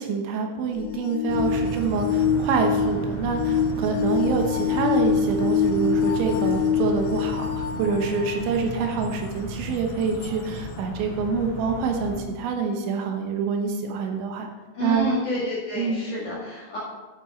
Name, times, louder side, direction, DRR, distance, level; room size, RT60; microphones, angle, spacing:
voice 1, 0.0-14.5 14.8-15.1 15.8-16.0, right 5 dB, 80° right, 3 dB, 3.3 m, -26 dB
sound 1, 0.8-8.4 9.1-9.2 10.2-10.3, left 7 dB, 85° left, 2.3 m, -25 dB
sound 2, 1.3-12.2, right 1 dB, 20° left, 1.7 m, -34 dB
voice 2, 14.7-16.8, left 1 dB, 50° left, -8 dB, 3.0 m, -29 dB
10.5 x 8.7 x 4.4 m, 1.3 s
omnidirectional pair, 5.5 m